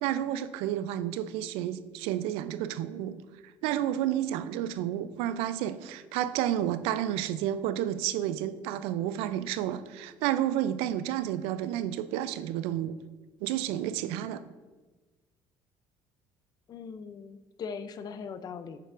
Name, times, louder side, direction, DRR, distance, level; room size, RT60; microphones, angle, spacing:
voice 1, 0.0-3.2 3.6-12.9 13.4-14.4, right 11 dB, 90° right, 13 dB, 0.4 m, -31 dB
voice 2, 16.7-18.8, left 6 dB, 45° left, 12 dB, 0.5 m, -40 dB
7.9 x 6.7 x 2.5 m, 1.3 s
cardioid pair, 105°, 9 cm